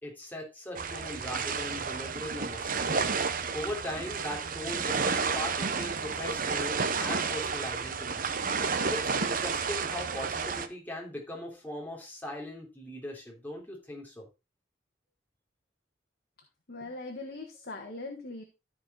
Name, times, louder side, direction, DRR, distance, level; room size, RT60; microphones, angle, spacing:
voice 1, 0.0-2.8 3.5-8.3 8.9-14.2, left 1 dB, 10° left, -2 dB, 3.4 m, -39 dB
sound 1, 0.7-10.7, right 5 dB, 50° right, 0.9 m, -31 dB
voice 2, 16.7-18.4, left 2 dB, 55° left, 3 dB, 1.5 m, -40 dB
14.0 x 5.0 x 4.0 m, 0.28 s
head